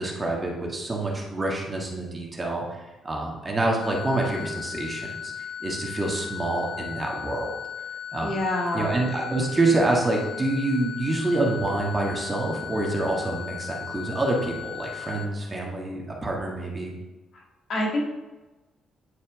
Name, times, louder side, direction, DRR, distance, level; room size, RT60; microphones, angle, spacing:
voice 1, 0.0-2.6 3.0-5.3 5.6-7.5 8.1-8.4 8.7-16.9, right 2 dB, 25° right, -1 dB, 1.6 m, -27 dB
sound 1, 3.8-15.2, left 9 dB, 75° left, 1.6 m, -37 dB
voice 2, 8.2-8.9 17.3-17.4 17.7-18.1, left 1 dB, 60° left, -2 dB, 1.8 m, -27 dB
9.5 x 4.3 x 3.6 m, 1.1 s
cardioid pair, 90°, 0 cm